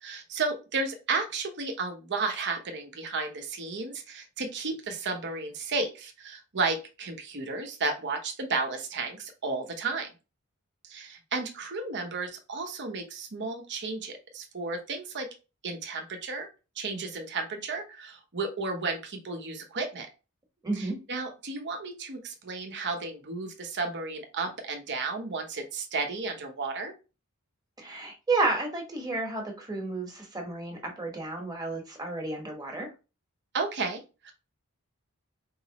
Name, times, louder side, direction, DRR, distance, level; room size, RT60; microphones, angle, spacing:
voice 1, 0.0-10.1 10.8-15.3 15.6-16.5 16.8-20.1 20.8-26.9 33.5-34.3, right 3 dB, 55° right, 4 dB, 0.9 m, -33 dB
voice 2, 20.6-21.0 27.8-32.9, right 3 dB, 20° right, 1 dB, 1.2 m, -31 dB
4.6 x 3.1 x 2.8 m, 0.30 s
head